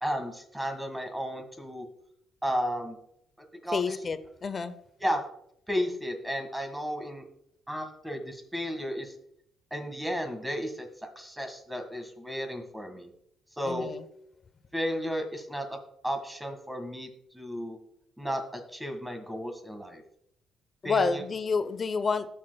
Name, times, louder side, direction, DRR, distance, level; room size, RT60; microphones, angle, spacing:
voice 1, 0.0-1.9 2.4-3.0 3.6-4.0 5.0-5.2 5.7-7.2 7.7-9.1 9.7-10.9 11.2-13.1 13.6-13.9 14.7-17.1 17.3-17.8 18.2-20.0 20.8-21.2, equal, 5° right, 5 dB, 1.9 m, -33 dB
voice 2, 3.7-4.7 13.6-14.0 20.8-22.3, left 4 dB, 40° left, 13 dB, 0.7 m, -29 dB
18.5 x 6.5 x 2.3 m, 0.72 s
cardioid pair, 90°, 0 cm